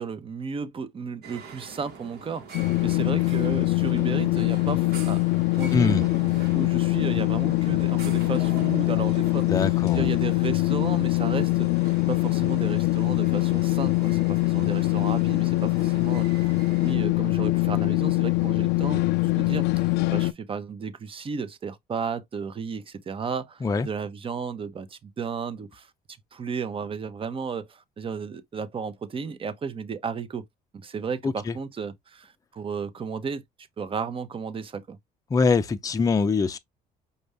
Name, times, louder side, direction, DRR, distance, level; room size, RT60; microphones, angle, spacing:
voice 1, 0.0-6.1 6.5-9.5 9.9-16.5 16.8-25.9 26.3-30.4 30.7-33.4 33.8-35.0, right 5 dB, 30° right, 0.8 m, -34 dB
sound 1, 1.2-16.9, right 4 dB, 70° right, 1.4 m, -44 dB
sound 2, 2.5-20.3, left 21 dB, 85° left, 0.4 m, -23 dB
voice 2, 5.7-6.0 9.5-10.1 23.6-23.9 31.2-31.5 35.3-36.6, left 4 dB, 20° left, 0.5 m, -23 dB
5.5 x 2.5 x 3.3 m
cardioid pair, 110°, 17 cm